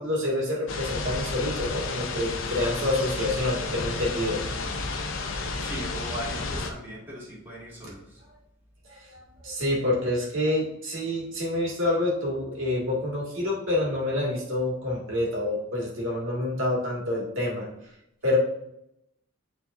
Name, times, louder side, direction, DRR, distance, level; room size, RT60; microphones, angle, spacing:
voice 1, 0.0-4.4 8.9-17.7 18.2-18.4, left 1 dB, 65° right, -3 dB, 2.1 m, -27 dB
sound 1, 0.7-6.7, left 3 dB, 65° left, 0.8 m, -31 dB
voice 2, 5.6-8.2, right 1 dB, 10° right, -8 dB, 2.4 m, -39 dB
9.7 x 3.9 x 2.6 m, 0.80 s
head